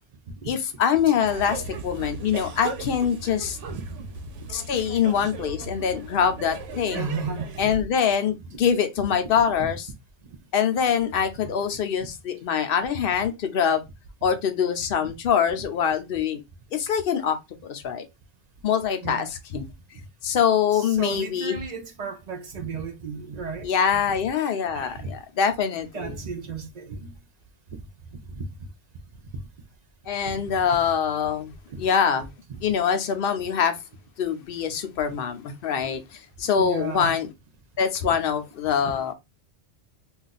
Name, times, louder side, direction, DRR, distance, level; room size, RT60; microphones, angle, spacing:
voice 1, 0.4-3.6 4.5-7.1 7.6-9.8 10.5-13.8 14.2-16.4 16.7-18.0 18.6-19.6 20.2-21.6 23.6-25.9 30.1-31.5 31.8-32.3 32.6-33.8 34.2-37.3 37.8-39.1, left 7 dB, 60° left, 0.7 m, -24 dB
sound 1, 1.3-7.8, right 4 dB, 90° right, 1.0 m, -37 dB
voice 2, 3.7-4.3 4.7-4.9 6.9-7.9 8.5-8.6 9.2-9.3 9.6-9.8 11.4-11.7 19.0-19.3 20.7-24.2 24.7-25.1 25.9-27.1 28.3-28.4 30.2-30.5 31.7-31.8 32.5-32.6 36.5-37.2 38.8-39.0, right 5 dB, 50° right, 0.5 m, -35 dB
2.4 x 2.3 x 3.9 m
omnidirectional pair, 1.2 m